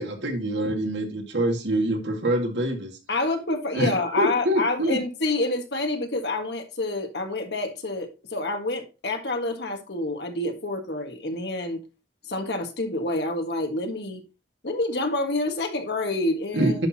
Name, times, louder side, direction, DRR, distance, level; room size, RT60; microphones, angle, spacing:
voice 1, 0.0-2.9 3.7-5.0 16.5-16.9, right 1 dB, 85° right, 2.0 m, -25 dB
voice 2, 3.1-11.8 12.2-14.2 14.6-16.8, left 2 dB, 65° left, 1.6 m, -28 dB
10.5 x 6.0 x 2.8 m
head